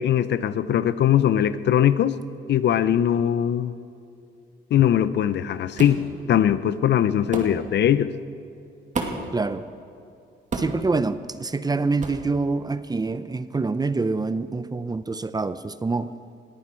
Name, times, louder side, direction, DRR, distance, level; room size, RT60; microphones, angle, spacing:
voice 1, 0.0-2.2 2.5-3.7 4.7-6.0 6.3-8.1, left 10 dB, 60° left, 15 dB, 0.6 m, -20 dB
sound 1, 5.8-6.0 7.3-7.5 8.9-9.3 10.5-10.8 12.0-12.2, right 3 dB, 40° right, 2.4 m, -29 dB
voice 2, 9.3-9.6 10.5-16.1, right 3 dB, 20° right, 13 dB, 0.6 m, -26 dB
20.5 x 14.0 x 4.5 m, 2.5 s
cardioid pair, 90°, 20 cm